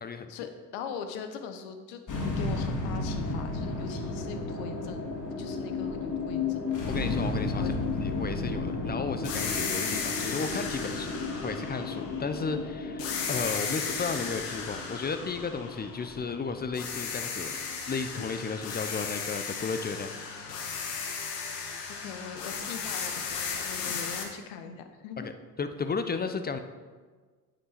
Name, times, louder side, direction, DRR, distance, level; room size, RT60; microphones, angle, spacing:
voice 1, 0.3-2.0 2.4-6.9 7.5-7.8 22.0-25.3, left 7 dB, 60° left, 7 dB, 1.2 m, -41 dB
sound 1, 2.1-18.5, left 3 dB, 40° left, 2.4 m, -34 dB
voice 2, 6.9-7.6 8.0-17.6 17.9-20.2 23.9-24.0 25.2-25.3 25.6-26.6, left 4 dB, 20° left, 9 dB, 0.7 m, -34 dB
sound 2, 9.2-12.5 13.0-16.4 16.7-24.2, left 5 dB, 80° left, 1.5 m, -35 dB
9.2 x 8.3 x 4.2 m, 1.4 s
hypercardioid pair, 70°, 48 cm